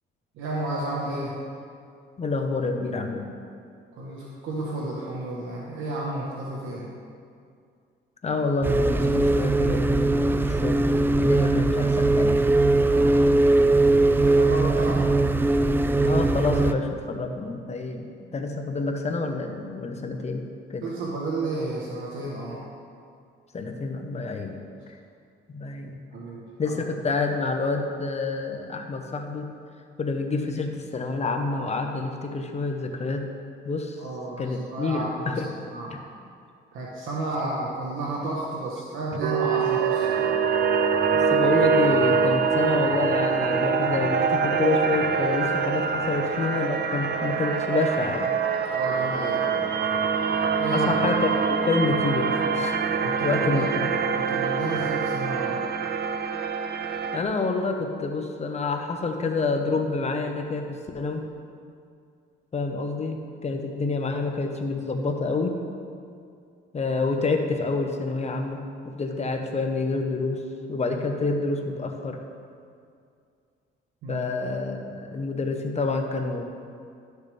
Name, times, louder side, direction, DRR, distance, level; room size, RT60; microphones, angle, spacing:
voice 1, 0.3-1.4 3.9-6.9 12.8-13.3 14.2-15.0 18.2-18.3 20.8-22.6 26.1-26.8 34.0-35.4 35.7-36.0 36.7-40.4 48.7-49.7 50.6-50.9 53.0-53.7 54.1-55.6 63.5-63.6 74.0-74.3, right 2 dB, 85° right, -3 dB, 1.2 m, -32 dB
voice 2, 2.2-3.3 8.2-10.8 11.2-12.3 14.8-14.9 16.0-20.4 20.7-20.8 23.5-24.6 25.5-26.0 26.6-29.5 30.0-33.3 33.6-34.0 34.4-35.4 41.1-48.3 50.7-52.8 53.2-53.6 57.1-61.2 62.5-65.5 66.7-70.4 70.7-72.2 74.1-76.4, left 3 dB, 35° left, 4 dB, 1.0 m, -28 dB
sound 1, 8.6-16.7, right 2 dB, 10° right, 0.3 m, -20 dB
sound 2, 39.2-57.2, right 6 dB, 55° right, 0.6 m, -24 dB
12.0 x 6.5 x 3.3 m, 2.3 s
cardioid pair, 90°, 20 cm